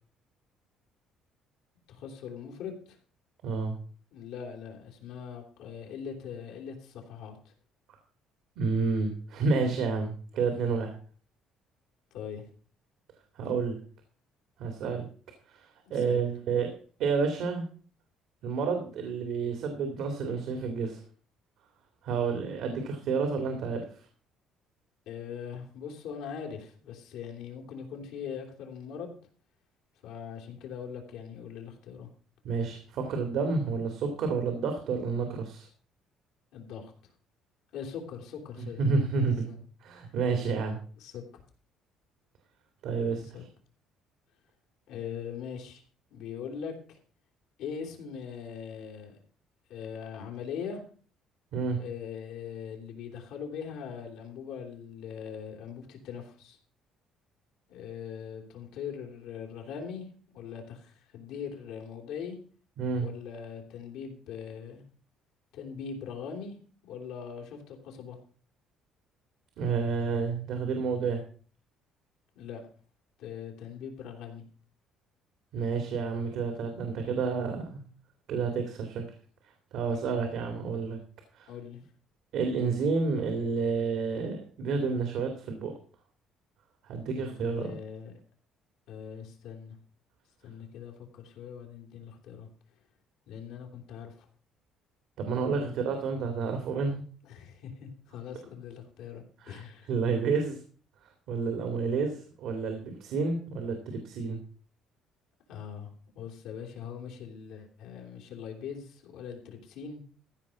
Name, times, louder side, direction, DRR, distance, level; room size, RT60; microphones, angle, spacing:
voice 1, 1.9-3.0 4.1-7.5 12.1-12.5 15.8-16.3 25.0-29.1 30.0-32.1 36.5-37.1 37.7-38.8 39.1-39.2 39.5-39.6 41.0-41.4 43.1-43.4 44.9-45.8 46.1-47.0 47.6-49.2 49.7-50.8 51.8-56.6 57.7-60.1 60.3-62.4 63.0-64.8 65.5-66.5 66.8-68.2 72.3-72.7 73.2-74.4 81.5-81.8 87.1-88.2 88.9-89.8 90.4-92.5 93.3-94.3 95.5-95.7 97.2-99.9 105.5-110.0, left 7 dB, 80° left, 1 dB, 3.5 m, -41 dB
voice 2, 3.4-3.7 8.6-10.9 13.4-13.8 14.6-15.1 15.5-16.7 17.0-17.7 18.4-21.0 22.0-24.1 32.4-35.7 38.6-39.5 39.8-40.8 42.8-43.2 51.5-51.8 62.8-63.1 69.6-71.2 75.5-77.8 78.3-79.0 79.7-81.0 81.3-81.5 82.3-85.7 86.8-87.7 95.2-97.0 99.4-100.6 101.3-104.4, right 4 dB, 70° right, 5 dB, 2.4 m, -30 dB
15.0 x 5.2 x 7.1 m, 0.42 s
cardioid pair, 125°, 0 cm